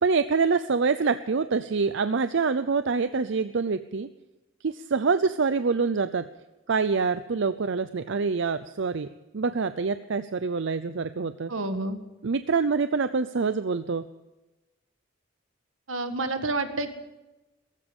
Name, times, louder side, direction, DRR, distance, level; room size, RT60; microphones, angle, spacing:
voice 1, 0.0-4.1 4.6-6.2 6.7-9.1 9.3-11.5 12.2-14.1, right 4 dB, 65° right, 12 dB, 0.6 m, -25 dB
voice 2, 11.5-12.0 15.9-16.9, right 2 dB, 85° right, 8 dB, 1.8 m, -29 dB
17.5 x 15.5 x 5.4 m, 1.0 s
head